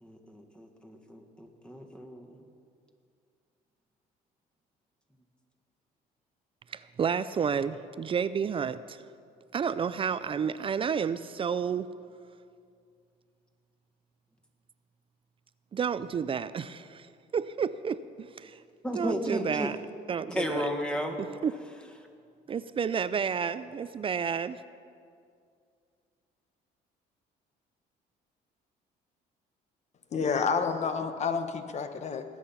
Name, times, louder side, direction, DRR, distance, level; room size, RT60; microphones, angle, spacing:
voice 1, 0.0-2.4 18.8-19.7 20.3-21.2, equal, 5° left, 3 dB, 1.6 m, -34 dB
voice 2, 6.7-9.0 9.5-11.9 15.7-17.1 17.3-18.6 18.9-19.8 20.1-20.7 21.2-21.5 22.5-24.6, right 7 dB, 30° right, 14 dB, 0.4 m, -31 dB
voice 3, 30.1-32.2, left 5 dB, 40° left, 8 dB, 1.2 m, -29 dB
19.5 x 8.8 x 5.8 m, 2.3 s
cardioid pair, 110°, 17 cm